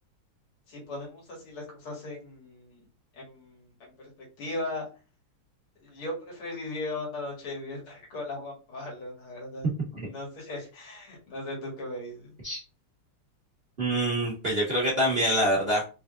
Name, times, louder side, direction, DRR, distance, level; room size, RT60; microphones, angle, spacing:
voice 1, 0.7-2.8 3.1-4.1 4.4-4.9 5.8-9.7 10.0-12.3, left 2 dB, 75° left, -2 dB, 2.6 m, -38 dB
voice 2, 13.8-15.8, equal, 40° right, -5 dB, 0.9 m, -25 dB
4.8 x 3.1 x 2.5 m, 0.34 s
omnidirectional pair, 2.4 m